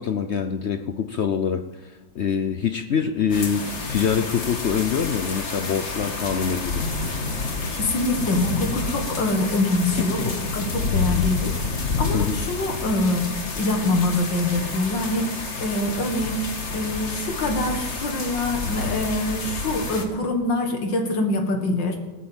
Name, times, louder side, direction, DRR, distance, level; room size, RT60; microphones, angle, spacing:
voice 1, 0.0-6.8 10.1-10.3 12.1-12.4, left 7 dB, 70° left, 8 dB, 0.6 m, -25 dB
sound 1, 3.3-20.0, left 4 dB, 40° left, 1.9 m, -29 dB
voice 2, 7.7-11.6 12.0-22.0, left 2 dB, 85° left, 4 dB, 2.5 m, -25 dB
19.0 x 8.5 x 7.3 m, 1.2 s
omnidirectional pair, 1.9 m